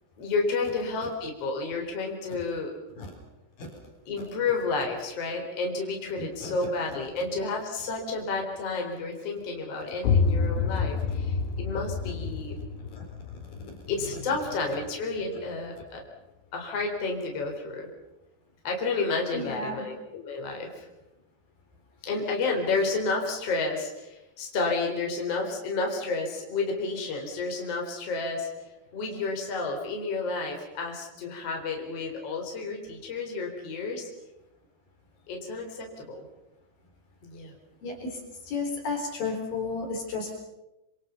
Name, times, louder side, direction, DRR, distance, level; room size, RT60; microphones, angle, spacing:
voice 1, 0.2-2.7 4.1-12.6 13.9-16.0 16.5-17.9 18.6-20.9 22.0-34.1 35.3-36.2 37.2-37.5, left 3 dB, 35° left, 1 dB, 4.8 m, -31 dB
voice 2, 6.2-6.5 12.9-13.0 13.6-13.8 19.3-19.8 37.8-38.2 38.5-40.3, left 3 dB, 55° left, 3 dB, 5.5 m, -33 dB
sound 1, 10.0-15.6, left 5 dB, 90° left, 3.2 m, -29 dB
27.5 x 26.5 x 5.7 m, 0.97 s
omnidirectional pair, 4.9 m